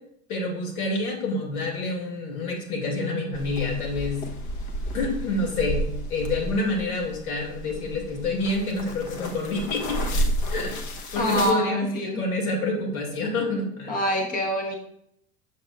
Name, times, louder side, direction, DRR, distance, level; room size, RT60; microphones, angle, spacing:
voice 1, 0.3-4.2 4.9-5.8 6.1-10.7 11.1-14.0, left 2 dB, 75° left, -1 dB, 2.4 m, -28 dB
sound 1, 3.3-11.5, equal, 40° left, 1.1 m, -31 dB
voice 2, 11.2-12.2 13.9-14.7, equal, 20° left, 3 dB, 1.0 m, -26 dB
7.5 x 6.3 x 2.4 m, 0.73 s
hypercardioid pair, 85°, 44 cm